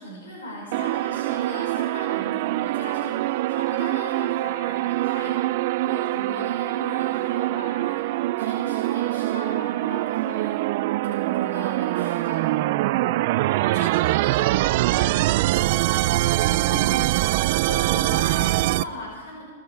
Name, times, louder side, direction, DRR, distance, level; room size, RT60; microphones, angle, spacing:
voice 1, 0.0-5.4 5.8-8.0 8.4-12.5 16.4-17.1 17.7-19.4, left 1 dB, 85° left, -2 dB, 5.6 m, -38 dB
sound 1, 0.7-18.8, right 17 dB, 55° right, 0.4 m, -24 dB
voice 2, 13.1-15.5 16.0-16.6, left 6 dB, 60° left, 6 dB, 1.9 m, -44 dB
19.0 x 15.0 x 4.7 m, 1.5 s
hypercardioid pair, 135°, 0 cm